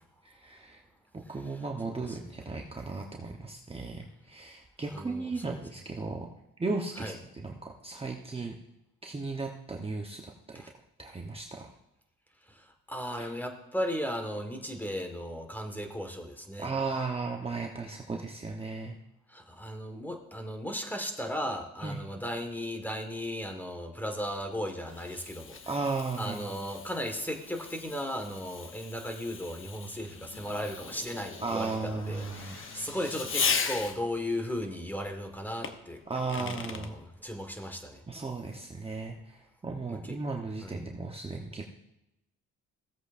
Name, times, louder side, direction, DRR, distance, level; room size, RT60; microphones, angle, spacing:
voice 1, 0.2-0.8 1.1-6.3 6.6-8.5 9.0-10.6 11.0-11.7 13.2-13.3 16.6-18.9 21.8-22.0 25.7-26.5 31.4-32.6 36.1-37.0 38.1-41.6, right 3 dB, 20° right, 1 dB, 1.0 m, -35 dB
voice 2, 1.8-2.2 4.9-5.6 7.0-7.1 10.5-10.7 12.4-16.7 19.3-25.6 26.2-36.0 36.3-38.0 39.9-40.1 40.6-40.8, equal, 5° left, 4 dB, 1.6 m, -36 dB
Fireworks, 24.3-34.2 35.6-36.9, left 5 dB, 45° left, 0.9 m, -38 dB
sound 1, 29.9-34.5, left 3 dB, 70° left, 2.8 m, -49 dB
16.5 x 7.9 x 2.6 m, 0.88 s
cardioid pair, 90°, 30 cm